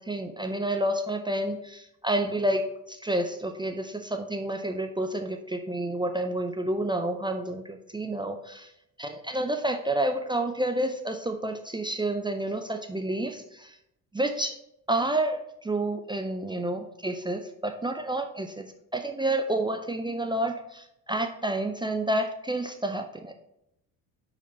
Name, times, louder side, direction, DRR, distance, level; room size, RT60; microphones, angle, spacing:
voice 1, 0.0-8.7 9.0-13.8 14.1-14.5 14.9-18.7 18.9-23.3, right 1 dB, 10° right, 5 dB, 0.4 m, -29 dB
5.3 x 4.9 x 4.2 m, 0.83 s
hypercardioid pair, 50°, 46 cm